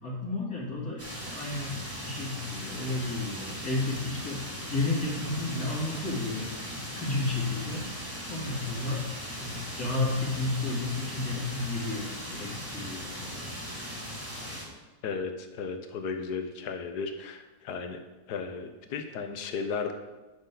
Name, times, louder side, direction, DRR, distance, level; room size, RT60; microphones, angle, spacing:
voice 1, 0.0-9.0 9.3-13.5, left 2 dB, 70° left, -6 dB, 3.4 m, -32 dB
sound 1, 1.0-14.6, equal, 10° right, 2.0 m, -39 dB
voice 2, 15.0-18.0 18.3-19.9, left 5 dB, 85° left, 7 dB, 1.4 m, -35 dB
11.0 x 6.6 x 3.8 m, 1.2 s
omnidirectional pair, 1.7 m